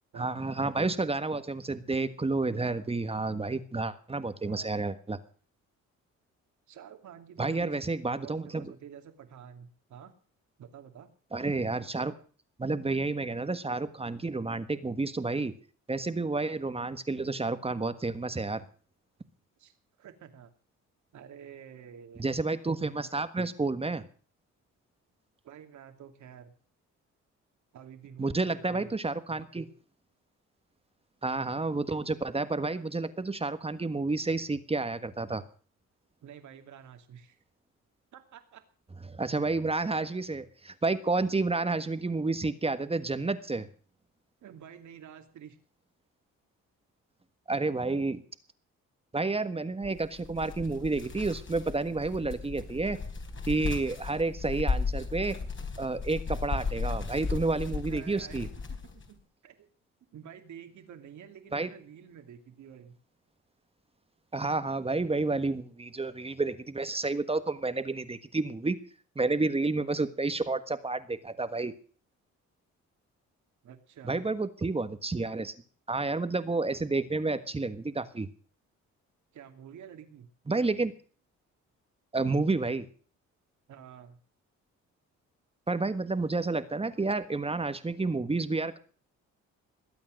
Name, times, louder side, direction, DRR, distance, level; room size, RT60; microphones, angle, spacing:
voice 1, 0.2-5.2 7.4-8.7 11.3-12.1 12.6-15.5 15.9-18.6 22.2-24.0 28.2-29.7 31.2-35.4 39.1-43.7 47.5-48.2 49.1-53.0 53.5-55.4 55.8-58.5 61.5-61.7 64.3-68.7 69.1-71.7 74.0-75.5 75.9-78.3 80.5-80.9 82.1-82.8 85.7-88.8, right 3 dB, 20° right, 11 dB, 1.5 m, -30 dB
voice 2, 6.7-7.8 8.1-10.1 10.6-11.1 19.6-20.5 21.1-22.3 25.4-26.5 27.7-28.9 36.2-37.4 38.1-38.6 44.4-45.6 57.9-59.7 60.1-62.9 73.6-74.2 79.3-80.3 83.7-84.2, right 8 dB, 70° right, 7 dB, 2.7 m, -49 dB
sound 1, 49.8-59.1, left 4 dB, 40° left, 4.2 m, -35 dB
20.5 x 8.8 x 6.6 m, 0.41 s
cardioid pair, 90°, 30 cm